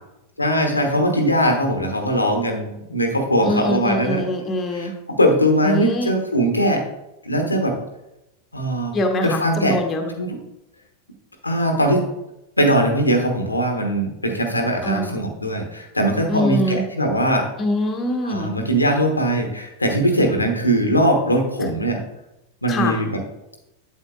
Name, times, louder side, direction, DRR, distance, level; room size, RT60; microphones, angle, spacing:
voice 1, 0.4-4.2 4.7-6.8 7.2-7.7 8.5-8.9 9.2-9.8 10.2-10.4 11.4-12.0 12.6-17.5 18.2-22.0 22.6-23.2, equal, 85° left, 4 dB, 1.0 m, -20 dB
voice 2, 3.4-4.9 5.6-6.1 8.9-10.1 14.8-15.2 16.3-16.9 17.6-18.5 22.7-23.0, equal, 20° left, 4 dB, 1.1 m, -23 dB
8.2 x 7.8 x 2.3 m, 0.92 s
figure-of-eight pair, 90°, 0 cm